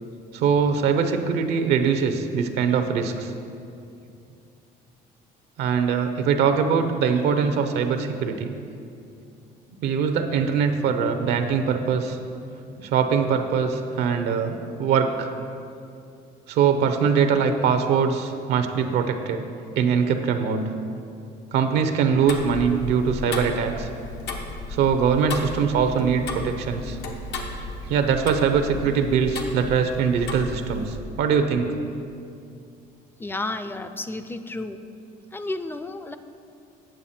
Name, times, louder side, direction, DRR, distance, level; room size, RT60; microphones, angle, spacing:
voice 1, 0.3-3.3 5.6-8.5 9.8-12.2 12.8-15.3 16.5-19.5 19.8-20.7 21.5-23.9 24.7-27.0 27.9-31.7, right 6 dB, 85° right, 7 dB, 0.7 m, -22 dB
Tick-tock, 22.3-31.0, left 2 dB, 85° left, 1.0 m, -34 dB
voice 2, 33.2-34.8 35.3-36.2, left 2 dB, 10° left, 10 dB, 0.4 m, -32 dB
9.0 x 6.9 x 4.3 m, 2.6 s
cardioid pair, 110°, 17 cm